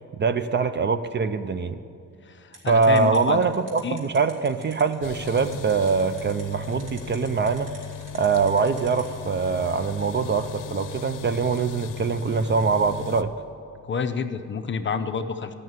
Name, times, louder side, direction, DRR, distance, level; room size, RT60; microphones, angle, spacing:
voice 1, 0.1-1.8 2.7-7.7 8.1-13.3, right 5 dB, 35° right, 11 dB, 0.4 m, -23 dB
voice 2, 2.2-3.5 3.8-4.0 13.8-15.5, left 6 dB, 35° left, 8 dB, 0.5 m, -29 dB
sound 1, 2.5-9.0, right 2 dB, 70° right, 2.7 m, -46 dB
sound 2, 5.0-13.2, left 8 dB, 75° left, 0.6 m, -37 dB
14.0 x 6.4 x 9.3 m, 2.5 s
wide cardioid pair, 150°, 32 cm